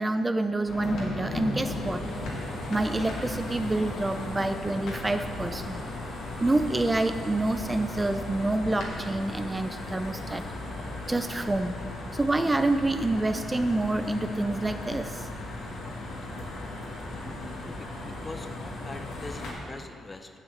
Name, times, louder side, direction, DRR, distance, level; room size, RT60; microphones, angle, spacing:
voice 1, 0.0-2.0 2.7-5.8 6.4-10.4 11.1-11.8 12.1-15.3, right 2 dB, 20° right, 9 dB, 0.4 m, -27 dB
sound 1, 0.7-19.5, left 1 dB, 70° left, 1.8 m, -36 dB
voice 2, 17.6-20.3, left 2 dB, 30° left, 7 dB, 0.9 m, -43 dB
7.1 x 7.0 x 6.6 m, 2.1 s
hypercardioid pair, 50°, 0 cm